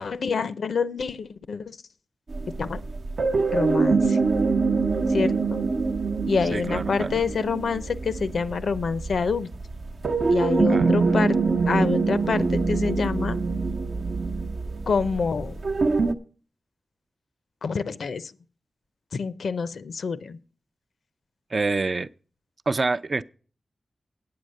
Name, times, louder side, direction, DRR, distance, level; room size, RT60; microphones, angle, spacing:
voice 1, 0.0-1.8 2.6-2.8 3.5-4.2 5.1-5.6 6.3-9.5 10.3-11.4 11.7-13.4 14.9-15.6 17.6-18.3 19.1-20.4, left 5 dB, 85° left, 0.6 m, -27 dB
sound 1, 2.3-16.1, right 4 dB, 70° right, 0.8 m, -25 dB
voice 2, 6.5-7.2 10.7-10.9 21.5-22.1 22.7-23.2, right 3 dB, 45° right, 0.4 m, -26 dB
8.7 x 8.1 x 6.4 m
wide cardioid pair, 95°, 0 cm